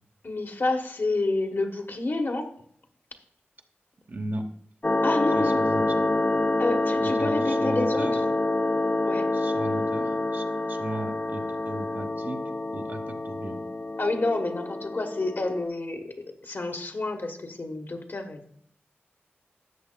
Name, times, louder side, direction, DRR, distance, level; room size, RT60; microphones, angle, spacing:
voice 1, 0.2-2.5 5.0-5.6 6.6-8.1 9.0-9.3 14.0-16.1 16.4-18.4, left 2 dB, 60° left, 4 dB, 1.1 m, -29 dB
voice 2, 4.1-4.5 5.3-5.9 7.0-8.2 9.3-12.4 12.7-13.6, right 1 dB, 55° right, 4 dB, 0.9 m, -36 dB
sound 1, 4.8-15.7, left 2 dB, 30° left, 0.5 m, -27 dB
12.5 x 8.0 x 2.2 m, 0.66 s
wide cardioid pair, 70°, 4 cm